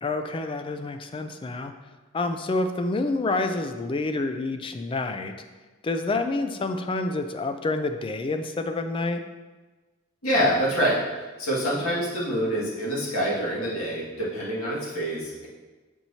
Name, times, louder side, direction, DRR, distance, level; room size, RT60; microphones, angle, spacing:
voice 1, 0.0-1.7 2.1-5.3 5.8-9.2, left 2 dB, 25° left, 7 dB, 0.3 m, -28 dB
voice 2, 10.2-11.0 11.4-15.5, equal, 85° left, -7 dB, 1.9 m, -26 dB
7.6 x 4.5 x 2.8 m, 1.3 s
head